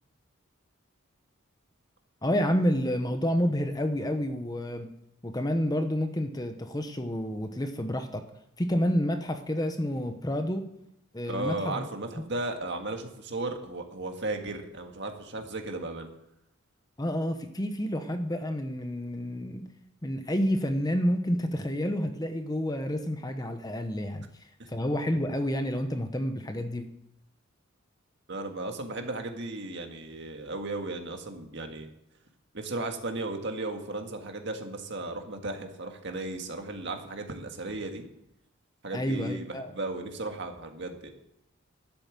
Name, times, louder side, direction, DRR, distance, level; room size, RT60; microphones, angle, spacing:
voice 1, 2.2-4.9 5.2-8.2 8.6-10.6 11.1-11.8 17.0-19.6 20.0-24.2 24.7-26.9 38.9-39.7, equal, 20° left, 7 dB, 1.0 m, -29 dB
voice 2, 11.3-16.1 24.6-24.7 28.3-31.9 32.5-38.0 38.8-41.1, right 2 dB, 55° right, 4 dB, 1.8 m, -35 dB
12.0 x 8.8 x 7.5 m, 0.81 s
head